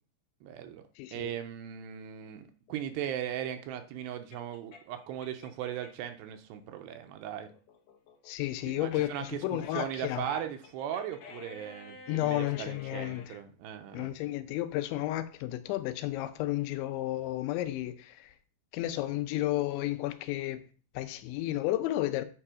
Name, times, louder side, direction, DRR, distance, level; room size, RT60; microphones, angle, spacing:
voice 1, 0.4-0.8 1.1-7.5 8.7-14.1, right 10 dB, 80° right, 2.7 m, -38 dB
voice 2, 1.0-1.4 8.3-10.3 12.1-13.4 13.9-18.3 18.7-20.6 20.9-22.2, left 15 dB, 90° left, 3.1 m, -32 dB
sound 1, 2.7-6.1 6.5-13.3, left 5 dB, 65° left, 2.2 m, -50 dB
9.1 x 4.9 x 4.9 m
omnidirectional pair, 5.2 m